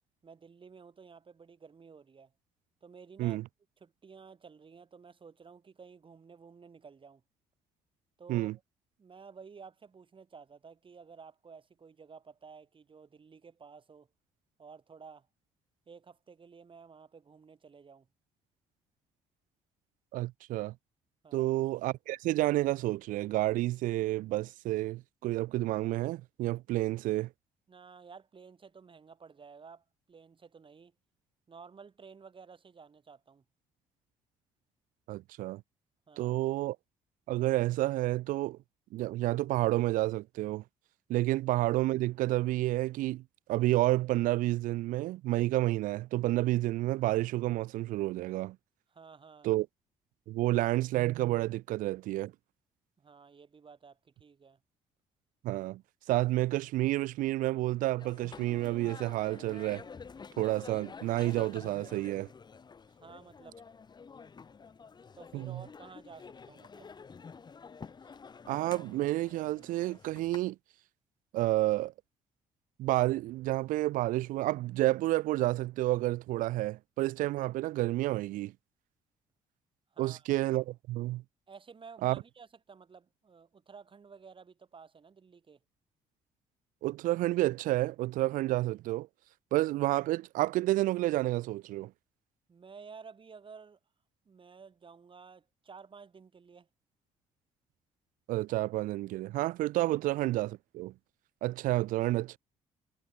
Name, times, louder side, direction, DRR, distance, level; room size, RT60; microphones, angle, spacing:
voice 1, 0.2-2.3 2.8-3.4 3.8-7.2 8.2-8.6 9.0-14.1 14.6-15.3 15.9-18.1 21.2-21.6 27.7-30.9 31.5-33.4 36.1-36.4 48.9-49.5 53.0-54.6 63.0-63.6 65.1-66.9 79.9-80.3 81.5-85.6 92.5-93.8 94.3-96.7 99.9-100.0, right 5 dB, 40° right, 3.6 m, -53 dB
voice 2, 20.1-20.7 21.3-27.3 35.1-35.6 36.2-36.8 37.3-38.6 38.9-40.6 41.1-43.2 43.5-48.6 49.4-49.7 50.3-52.3 55.4-55.8 56.1-59.8 60.4-62.3 65.3-65.6 68.5-70.6 71.3-71.9 72.8-78.5 80.0-81.2 82.0-82.2 86.8-89.1 89.5-91.9 98.3-100.9 101.4-102.4, right 17 dB, 75° right, 0.7 m, -30 dB
sound 1, 58.0-70.4, left 5 dB, 30° left, 0.9 m, -49 dB
supercardioid pair, 70°, 14 cm